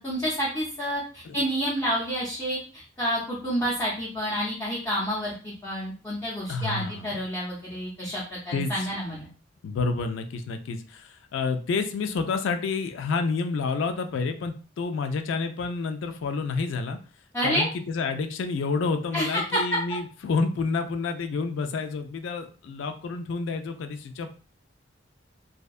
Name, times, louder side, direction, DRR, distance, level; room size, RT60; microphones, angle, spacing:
voice 1, 0.0-9.3 17.3-17.7 19.1-19.6, equal, 15° left, -7 dB, 0.5 m, -29 dB
voice 2, 6.5-7.2 8.5-8.9 9.6-17.0 17.4-24.3, left 4 dB, 80° left, 7 dB, 0.3 m, -29 dB
2.6 x 2.2 x 2.3 m, 0.39 s
head